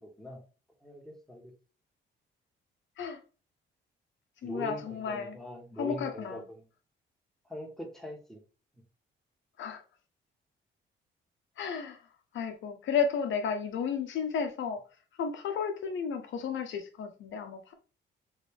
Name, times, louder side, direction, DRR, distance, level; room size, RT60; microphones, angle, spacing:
voice 1, 0.0-0.4 0.8-1.5 4.4-6.6 7.5-8.4, equal, ahead, 1.4 m, -42 dB
voice 2, 4.4-5.4 5.8-6.4 9.6-9.8 11.6-12.0 12.3-14.8 15.2-17.7, left 6 dB, 75° left, 1.1 m, -33 dB
3.8 x 3.5 x 3.5 m
cardioid pair, 90°, 20 cm